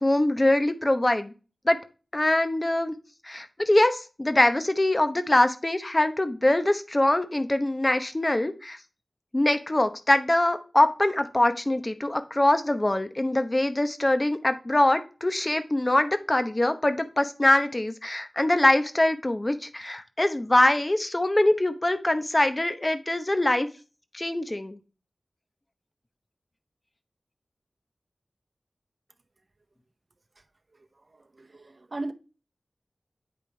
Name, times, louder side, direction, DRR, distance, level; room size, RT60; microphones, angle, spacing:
voice 1, 0.0-1.3 1.7-1.8 2.1-2.9 3.2-8.8 9.3-23.7 24.1-24.8, left 1 dB, 30° left, 0.9 m, -23 dB
voice 2, 31.4-32.1, right 2 dB, 55° right, 0.7 m, -35 dB
8.9 x 5.1 x 3.3 m
wide cardioid pair, 50°, 0 cm